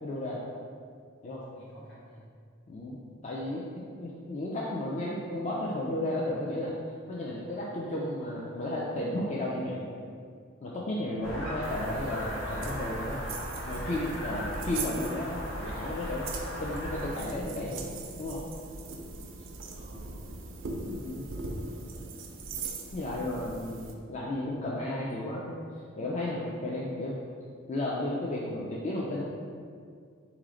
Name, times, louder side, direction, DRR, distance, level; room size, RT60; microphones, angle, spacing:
voice 1, 0.0-0.4 1.2-1.4 2.7-3.6 3.9-6.7 7.1-10.0 10.6-13.2 13.6-16.2 16.6-17.8 18.2-18.4 20.8-21.3 22.9-25.5 26.0-27.2 27.7-29.2, left 1 dB, 35° left, -5 dB, 0.4 m, -33 dB
voice 2, 1.5-2.2 19.7-20.6 21.4-22.2, right 1 dB, 65° left, -7 dB, 1.4 m, -53 dB
sound 1, 11.2-17.2, equal, 85° left, 1.0 m, -37 dB
sound 2, 11.6-23.9, right 3 dB, 70° right, 0.5 m, -41 dB
4.0 x 3.0 x 3.7 m, 2.2 s
head